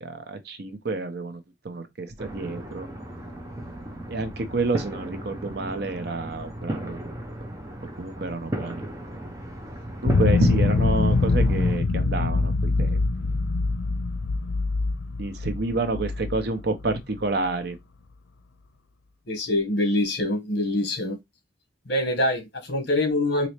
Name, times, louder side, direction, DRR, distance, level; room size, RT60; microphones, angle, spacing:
voice 1, 0.0-2.9 4.1-7.0 8.0-8.8 10.0-13.0 15.2-17.8, right 3 dB, 55° right, 0.7 m, -29 dB
sound 1, 2.2-11.8, right 1 dB, 15° right, 0.7 m, -36 dB
sound 2, 10.0-17.2, left 3 dB, 90° left, 0.5 m, -24 dB
voice 2, 19.3-21.2 21.9-23.5, left 1 dB, 60° left, 1.2 m, -24 dB
4.1 x 2.7 x 3.2 m
head